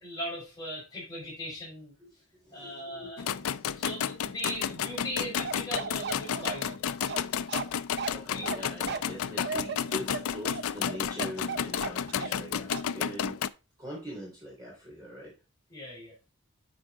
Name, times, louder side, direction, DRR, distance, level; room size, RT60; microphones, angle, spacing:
voice 1, 0.0-1.9 2.5-3.2 3.8-6.8 8.3-8.5 12.2-12.4 15.7-16.1, equal, 20° left, -4 dB, 5.2 m, -39 dB
voice 2, 2.0-3.8 7.1-7.5 8.1-13.5 13.8-15.3, equal, 20° right, -3 dB, 3.4 m, -43 dB
sound 1, 3.2-13.5, left 8 dB, 85° left, 0.4 m, -32 dB
Bark, 5.4-12.4 12.7-12.9, right 5 dB, 50° right, 0.6 m, -36 dB
9.0 x 4.9 x 3.6 m, 0.29 s
head